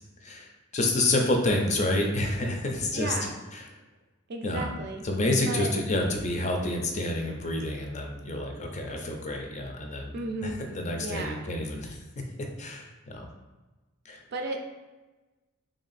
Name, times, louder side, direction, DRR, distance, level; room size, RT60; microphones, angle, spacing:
voice 1, 0.2-3.2 3.5-3.6 4.4-4.7 5.0-10.1 10.4-12.0 12.6-13.3 14.1-14.2, left 2 dB, 35° left, 2 dB, 0.5 m, -28 dB
voice 2, 2.9-3.3 4.3-5.0 5.5-5.7 10.1-10.6 11.0-11.4 14.3-14.6, right 2 dB, 50° right, 3 dB, 0.4 m, -34 dB
3.3 x 2.6 x 4.0 m, 1.2 s
head